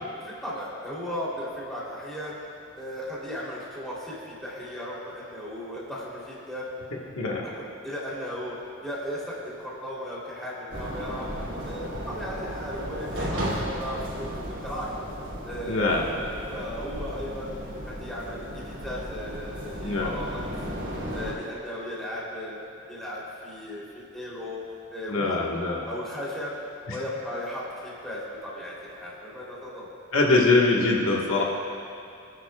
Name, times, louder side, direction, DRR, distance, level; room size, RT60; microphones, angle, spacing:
voice 1, 0.2-2.4 2.7-6.7 7.5-8.6 8.8-11.3 11.6-14.9 15.5-20.5 21.1-22.6 22.9-24.6 24.9-25.4 25.9-26.5 26.9-29.9, equal, ahead, -8 dB, 3.0 m, -36 dB
sound 1, 10.7-21.3, equal, 60° right, 3.0 m, -35 dB
voice 2, 15.7-16.1 19.8-20.1 25.1-25.9 26.9-27.0 30.1-31.4, left 3 dB, 85° left, -2 dB, 1.4 m, -23 dB
25.0 x 10.0 x 2.3 m, 2.5 s
head